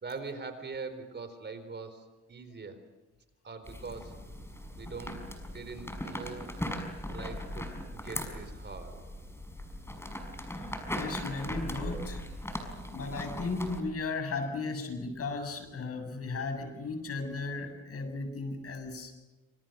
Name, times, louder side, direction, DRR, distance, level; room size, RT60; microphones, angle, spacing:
voice 1, 0.0-2.8 3.4-4.1 4.8-5.2 5.5-6.5 7.1-9.0 12.5-12.6, right 4 dB, 35° right, 9 dB, 4.4 m, -42 dB
sound 1, 3.6-13.8, left 1 dB, 10° left, 5.8 m, -39 dB
voice 2, 10.9-12.2 12.7-19.1, left 3 dB, 50° left, 7 dB, 7.2 m, -36 dB
27.5 x 27.0 x 6.6 m, 1.1 s
cardioid pair, 90°, 30 cm